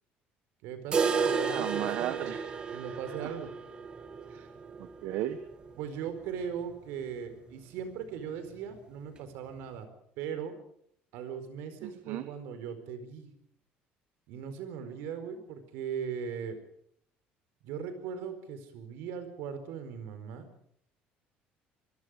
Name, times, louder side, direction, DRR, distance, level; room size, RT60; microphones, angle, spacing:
voice 1, 0.6-2.3 2.7-3.5 5.8-9.9 10.2-10.5 11.1-13.3 14.3-16.6 17.6-20.5, right 7 dB, 80° right, 10 dB, 4.7 m, -39 dB
sound 1, 0.9-6.7 7.0-7.1 7.5-7.6 8.1-8.2 9.0-9.1, right 5 dB, 25° right, 1.8 m, -33 dB
voice 2, 1.2-2.4 2.7-2.8 3.2-3.3 4.3-4.5 4.8-5.4 11.8-12.3, right 13 dB, 65° right, 10 dB, 1.3 m, -36 dB
25.0 x 23.5 x 5.1 m, 0.69 s
cardioid pair, 175°, 4 cm